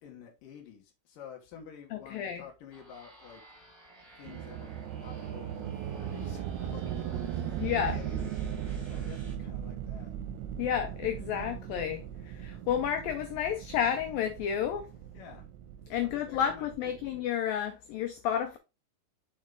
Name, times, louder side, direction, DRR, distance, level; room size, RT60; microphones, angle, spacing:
voice 1, 0.0-3.4 4.2-4.7 5.0-10.1 15.1-15.5 16.0-17.1, left 7 dB, 60° left, 2.7 m, -50 dB
voice 2, 1.9-2.4 7.6-8.0 10.6-14.9 15.9-18.6, left 9 dB, 90° left, 2.0 m, -31 dB
sound 1, 2.7-9.3, right 1 dB, 10° right, 1.3 m, -55 dB
sound 2, 4.2-17.3, right 9 dB, 85° right, 2.5 m, -38 dB
7.3 x 4.7 x 3.7 m
omnidirectional pair, 4.9 m